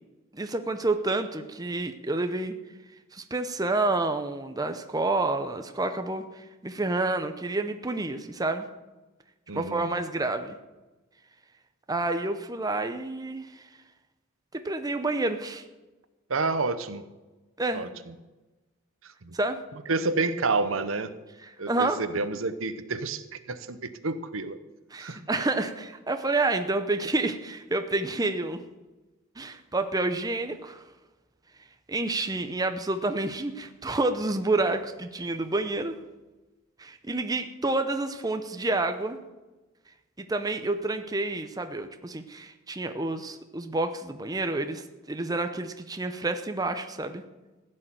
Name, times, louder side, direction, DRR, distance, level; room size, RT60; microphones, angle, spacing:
voice 1, 0.3-2.5 3.1-8.7 9.5-10.6 11.9-13.5 14.5-15.6 17.6-17.9 19.3-19.6 21.4-22.0 24.9-28.6 29.4-30.8 31.9-35.9 36.8-39.2 40.2-47.2, right 2 dB, 20° right, 7 dB, 0.7 m, -29 dB
voice 2, 9.5-9.9 16.3-17.0 17.7-17.9 19.2-19.3 19.9-21.1 21.6-23.2 23.5-24.6 25.0-25.2, right 3 dB, 70° right, 11 dB, 0.9 m, -29 dB
15.5 x 6.5 x 9.1 m, 1.1 s
head